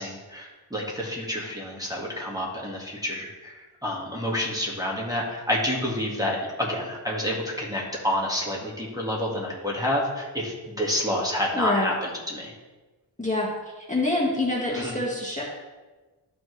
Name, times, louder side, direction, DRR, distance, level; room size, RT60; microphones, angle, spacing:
voice 1, 0.0-12.5 14.7-15.0, left 1 dB, 10° right, -4 dB, 1.7 m, -29 dB
voice 2, 11.5-11.9 13.2-13.5 13.8-15.4, left 2 dB, 15° left, -4 dB, 1.6 m, -26 dB
12.5 x 4.2 x 3.2 m, 1.2 s
wide cardioid pair, 45°, 48 cm